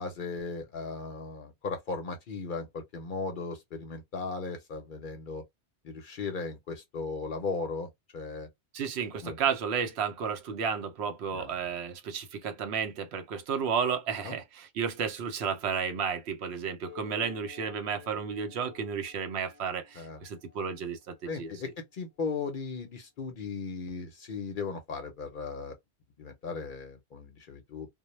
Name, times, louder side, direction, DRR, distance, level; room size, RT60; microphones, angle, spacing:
voice 1, 0.0-5.4 5.8-8.5 9.2-9.4 11.3-11.5 14.2-14.4 20.0-20.2 21.3-25.7 26.2-27.9, left 4 dB, 60° left, 0.6 m, -37 dB
voice 2, 8.7-21.5, right 6 dB, 70° right, 0.8 m, -32 dB
sound 1, 16.8-21.8, left 5 dB, 25° right, 0.5 m, -53 dB
2.1 x 2.1 x 2.9 m
omnidirectional pair, 1.2 m